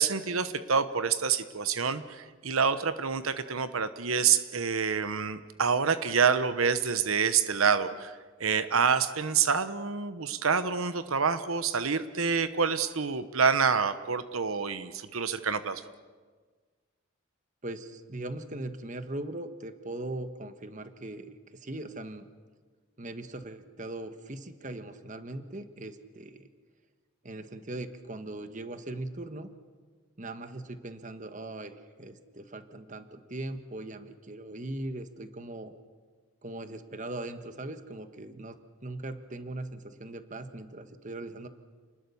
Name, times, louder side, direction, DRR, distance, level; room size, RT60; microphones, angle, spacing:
voice 1, 0.0-15.8, right 6 dB, 85° right, 12 dB, 1.0 m, -27 dB
voice 2, 17.6-22.3 23.0-26.5 27.2-29.5 30.2-35.7 36.4-41.5, right 2 dB, 35° right, 9 dB, 1.4 m, -40 dB
29.0 x 20.0 x 7.1 m, 1.5 s
head